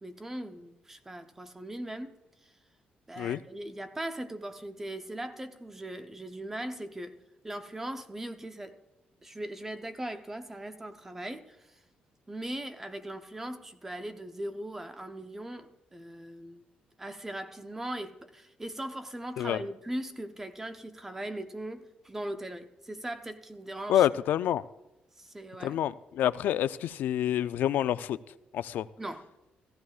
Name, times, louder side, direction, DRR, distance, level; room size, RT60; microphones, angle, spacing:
voice 1, 0.0-2.1 2.4-2.5 3.1-7.2 7.4-8.8 9.2-11.7 12.3-16.6 17.0-24.1 25.2-25.8 29.0-29.3, right 1 dB, 10° right, 0.7 m, -39 dB
voice 2, 23.9-24.6 25.6-28.2 28.5-28.8, left 11 dB, 80° left, 0.4 m, -27 dB
15.5 x 14.5 x 2.4 m
cardioid pair, 160°, 3 cm